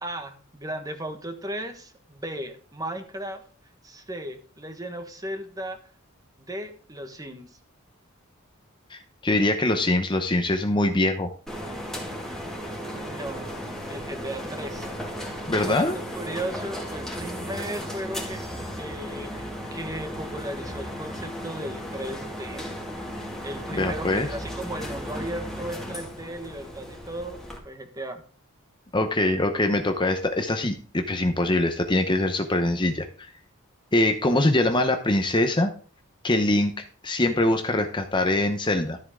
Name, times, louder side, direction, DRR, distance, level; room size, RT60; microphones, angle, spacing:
voice 1, 0.0-3.4 3.8-5.8 6.5-7.6 13.1-13.5 13.9-14.9 15.5-18.4 18.8-22.6 23.4-27.4 27.6-28.2, right 1 dB, 15° right, 7 dB, 1.3 m, -36 dB
voice 2, 8.9-11.3 15.5-16.0 23.7-24.3 28.9-33.3 33.9-35.7 36.2-39.0, left 1 dB, 20° left, 6 dB, 0.8 m, -23 dB
sound 1, 11.5-27.6, equal, ahead, 2.2 m, -35 dB
12.5 x 8.0 x 3.7 m, 0.40 s
head